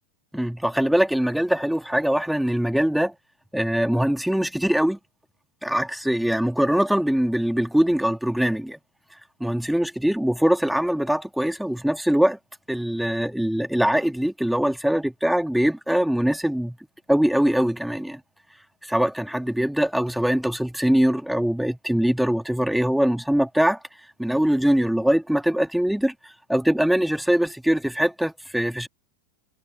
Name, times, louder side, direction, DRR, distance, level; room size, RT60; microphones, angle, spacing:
voice 1, 0.3-3.1 3.5-5.0 5.6-8.8 9.4-12.4 12.7-16.8 17.1-18.2 18.8-23.8 24.2-28.9, equal, ahead, 2.5 m, -22 dB
figure-of-eight pair, 90°, 0 cm